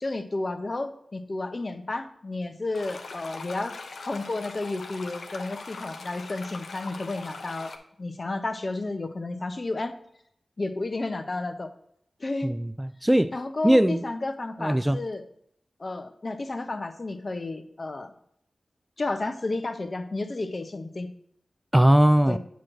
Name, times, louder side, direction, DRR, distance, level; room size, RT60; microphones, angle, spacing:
voice 1, 0.0-3.8 4.0-7.7 8.0-9.9 10.6-11.7 12.2-12.5 13.3-15.2 15.8-18.1 19.0-21.1 22.3-22.4, left 2 dB, 50° left, 0.8 m, -32 dB
sound 1, 2.7-7.8, left 3 dB, 85° left, 0.7 m, -41 dB
voice 2, 12.4-13.3 13.6-14.0 14.6-15.0 21.7-22.4, right 1 dB, 10° right, 0.3 m, -20 dB
8.2 x 3.0 x 6.4 m
cardioid pair, 40°, 0 cm